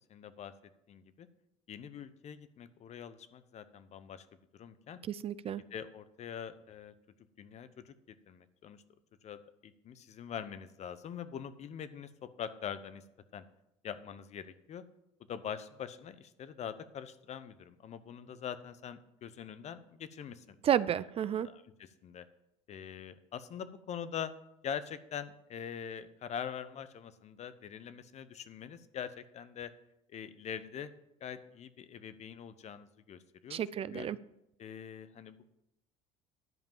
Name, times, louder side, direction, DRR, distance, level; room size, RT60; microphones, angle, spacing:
voice 1, 0.1-0.5 0.9-1.3 1.7-4.3 4.5-5.0 5.7-6.9 7.4-7.9 8.3-8.8 9.2-12.1 12.4-13.0 13.3-13.4 13.8-14.8 15.3-20.6 21.4-22.2 22.7-24.3 24.6-29.7 30.1-30.9 31.2-33.6 33.9-34.1 34.6-35.5, left 8 dB, 45° left, 13 dB, 0.9 m, -43 dB
voice 2, 5.1-5.6 20.6-21.5 33.5-34.2, right 9 dB, 35° right, 17 dB, 0.4 m, -31 dB
11.0 x 5.2 x 7.3 m, 0.84 s
hypercardioid pair, 75°, 16 cm